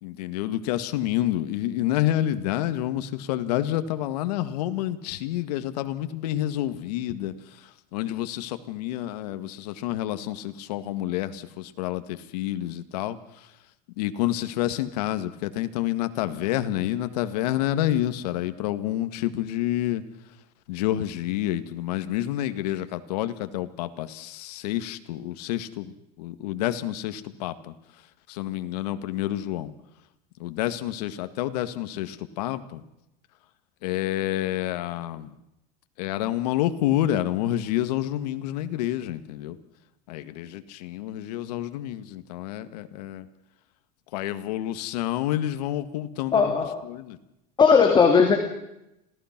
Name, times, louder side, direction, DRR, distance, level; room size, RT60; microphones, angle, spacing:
voice 1, 0.0-13.5 14.0-20.0 20.7-25.9 26.2-27.7 28.3-29.7 30.4-32.8 33.8-35.3 36.0-39.6 40.1-43.3 44.1-47.2, left 13 dB, 80° left, 11 dB, 1.9 m, -28 dB
voice 2, 46.3-46.8 47.6-48.4, left 5 dB, 25° left, 4 dB, 2.7 m, -17 dB
27.0 x 17.5 x 6.0 m, 0.85 s
supercardioid pair, 140°, 20 cm